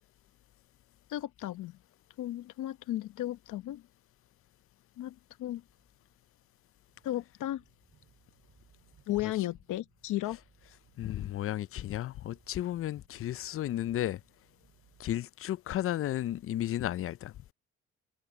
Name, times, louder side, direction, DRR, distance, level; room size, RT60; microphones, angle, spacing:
voice 1, 1.1-1.8 2.2-3.8 5.0-5.6 7.0-7.6 9.1-10.4, left 14 dB, 80° left, 0.9 m, -35 dB
sound 1, 5.4-15.1, right 8 dB, 55° right, 5.6 m, -66 dB
voice 2, 11.0-14.2 15.0-17.3, left 12 dB, 50° left, 0.4 m, -33 dB
cardioid pair, 90°, 30 cm